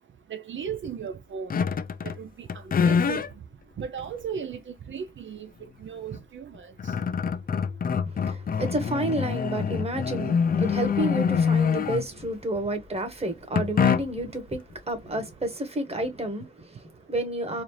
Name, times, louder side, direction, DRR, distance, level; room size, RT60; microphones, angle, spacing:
voice 1, 0.3-1.5 2.0-3.3 3.8-5.5 5.8-6.9, right 7 dB, 70° right, 0.5 m, -36 dB
sound 1, 1.5-2.2 2.5-3.3 4.0-4.1 6.1-6.2 6.5-12.3 13.6-14.4, left 6 dB, 45° left, 0.4 m, -25 dB
voice 2, 8.1-17.6, right 1 dB, 30° right, 1.3 m, -30 dB
4.2 x 2.5 x 3.1 m
wide cardioid pair, 105°, 20 cm